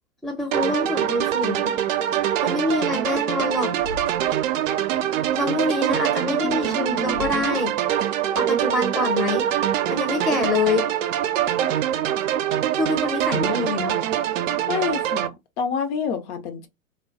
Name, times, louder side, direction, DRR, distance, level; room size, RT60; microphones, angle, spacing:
voice 1, 0.2-1.8 2.4-3.7 5.4-7.7 8.4-9.4 9.9-10.9 12.8-14.0, left 2 dB, ahead, 0.6 m, -25 dB
sound 1, 0.5-15.3, right 11 dB, 65° right, 0.5 m, -24 dB
Thump thud, 3.7-4.4 7.1-7.6, left 5 dB, 90° left, 1.1 m, -38 dB
voice 2, 6.2-7.5 14.7-16.7, left 6 dB, 50° left, 0.7 m, -29 dB
2.2 x 2.2 x 3.5 m
hypercardioid pair, 100°, 43 cm